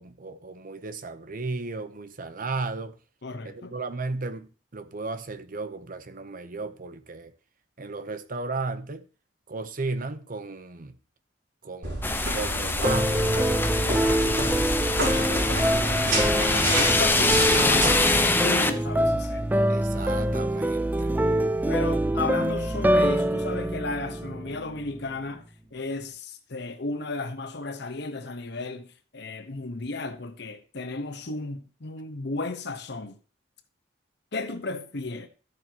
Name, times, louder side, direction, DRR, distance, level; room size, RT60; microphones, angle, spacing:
voice 1, 0.0-3.0 3.4-7.3 7.8-9.0 9.5-11.0 11.6-12.0 12.3-14.6 16.1-16.3 19.7-21.1, right 3 dB, 50° right, 0.8 m, -35 dB
voice 2, 3.2-3.8 13.8-14.5 15.0-19.5 21.7-25.5 25.7-33.2 34.3-35.3, left 3 dB, 65° left, 1.1 m, -34 dB
sound 1, 11.8-18.2, right 1 dB, 80° right, 5.4 m, -30 dB
sound 2, 12.0-18.7, left 3 dB, 10° left, 0.7 m, -25 dB
sound 3, 12.8-25.0, right 1 dB, 10° right, 0.4 m, -25 dB
13.5 x 7.7 x 2.9 m
head